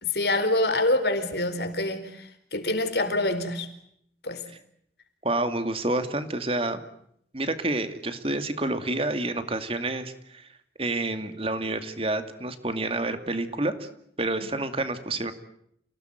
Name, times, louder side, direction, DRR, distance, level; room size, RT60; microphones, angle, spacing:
voice 1, 0.0-3.7 4.2-4.4 14.4-14.5, left 2 dB, 65° left, 4.3 m, -26 dB
voice 2, 5.2-6.8 7.3-10.5 10.8-13.9 14.2-15.3, right 2 dB, 30° right, 2.4 m, -28 dB
29.5 x 18.0 x 9.3 m
head